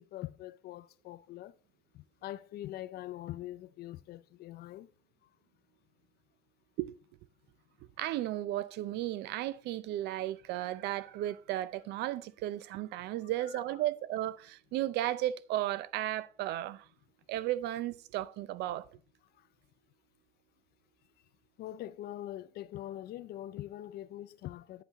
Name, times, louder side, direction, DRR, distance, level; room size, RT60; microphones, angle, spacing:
voice 1, 0.0-1.5 1.9-4.9 5.2-5.3 13.4-13.6 19.3-19.5 21.6-24.8, left 13 dB, 70° left, 0.5 m, -43 dB
voice 2, 8.0-16.9 17.3-18.9, right 14 dB, 80° right, 0.5 m, -34 dB
9.6 x 5.8 x 4.0 m
cardioid pair, 110°, 17 cm